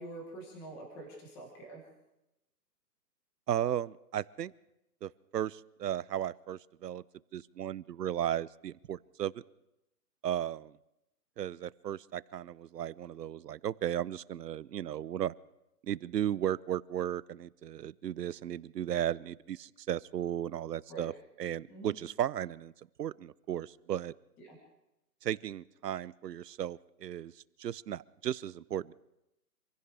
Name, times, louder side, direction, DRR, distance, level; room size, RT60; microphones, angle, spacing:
voice 1, 0.0-1.8 20.9-21.1 21.7-21.9 24.4-24.5, right 2 dB, 5° left, 0 dB, 1.0 m, -46 dB
voice 2, 3.5-4.5 5.0-7.0 7.3-9.3 10.2-10.7 11.4-15.3 15.8-21.1 21.4-22.7 23.0-24.1 25.2-27.3 27.6-28.9, right 10 dB, 75° right, 20 dB, 0.7 m, -35 dB
26.5 x 16.0 x 3.4 m, 0.89 s
hypercardioid pair, 170°, 49 cm